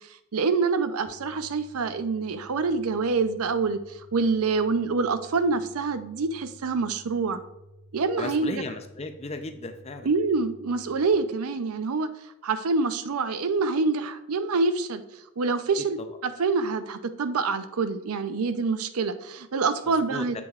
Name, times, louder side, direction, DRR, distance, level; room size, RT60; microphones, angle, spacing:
voice 1, 0.3-3.8 4.1-7.4 7.9-8.6 10.0-12.1 12.4-15.0 15.4-16.0 16.2-20.4, right 4 dB, 85° right, 10 dB, 0.5 m, -26 dB
sound 1, 1.0-11.1, equal, 40° right, 1.4 m, -53 dB
voice 2, 8.2-10.1 16.0-16.1 19.8-20.4, left 2 dB, 30° left, 8 dB, 0.5 m, -36 dB
7.8 x 7.6 x 2.4 m, 0.92 s
head